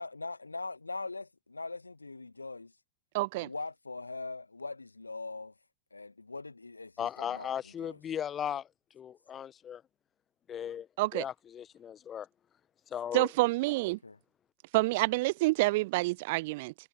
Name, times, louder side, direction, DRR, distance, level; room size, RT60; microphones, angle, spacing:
voice 1, 0.0-2.7 3.4-5.5 5.9-8.0 14.0-14.2, left 3 dB, 80° left, 1.4 m, -41 dB
voice 2, 3.1-3.5 11.0-11.2 13.1-14.0 14.7-16.7, right 22 dB, 50° right, 0.4 m, -28 dB
voice 3, 7.0-8.7 8.9-9.8 10.5-10.9 11.1-12.3 12.9-13.3, left 9 dB, 25° left, 1.2 m, -37 dB
figure-of-eight pair, 90°, 0 cm